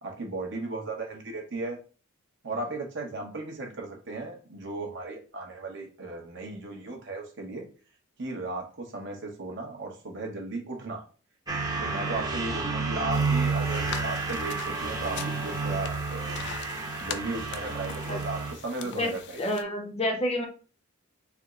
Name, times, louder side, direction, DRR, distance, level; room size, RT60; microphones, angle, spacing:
voice 1, 0.0-1.8 2.4-7.7 8.2-11.0 11.8-16.4 16.7-19.4, right 2 dB, 60° right, 1 dB, 0.9 m, -36 dB
sound 1, 11.5-18.5, right 4 dB, 20° right, 0.7 m, -30 dB
sound 2, 13.1-19.6, left 8 dB, 55° left, 0.3 m, -42 dB
voice 2, 19.4-20.5, left 1 dB, 30° left, 3 dB, 0.7 m, -28 dB
3.4 x 2.0 x 3.5 m, 0.38 s
head